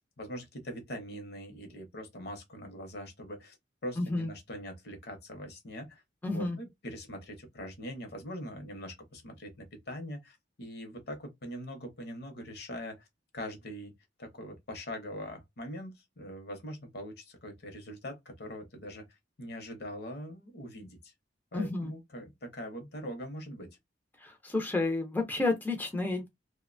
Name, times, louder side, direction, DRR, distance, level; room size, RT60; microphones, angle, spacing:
voice 1, 0.0-3.6 3.8-6.0 6.3-13.0 13.3-13.9 14.2-19.1 19.4-21.0 21.5-23.7, equal, 60° left, 0.8 m, -42 dB
voice 2, 4.0-4.3 6.2-6.6 21.5-21.9 24.2-26.3, left 2 dB, 10° left, 0.4 m, -31 dB
2.5 x 2.1 x 2.5 m
head